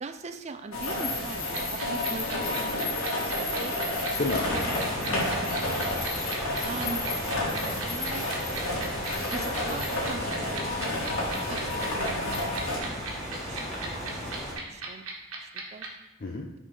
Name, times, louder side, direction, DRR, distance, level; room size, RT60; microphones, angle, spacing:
voice 1, 0.0-2.5 3.2-3.7 6.6-7.0 7.7-8.3 9.3-10.8 11.3-12.1 12.4-15.0 15.4-15.9, right 3 dB, 30° right, 8 dB, 0.4 m, -41 dB
sound 1, 0.7-12.8, left 2 dB, 80° left, 1.7 m, -31 dB
sound 2, 1.5-15.9, right 5 dB, 90° right, 1.2 m, -35 dB
sound 3, 4.1-14.5, equal, 5° left, 2.4 m, -36 dB
voice 2, 4.2-6.0 16.2-16.5, left 3 dB, 45° left, 0 dB, 0.5 m, -34 dB
6.2 x 3.9 x 5.1 m, 1.0 s
head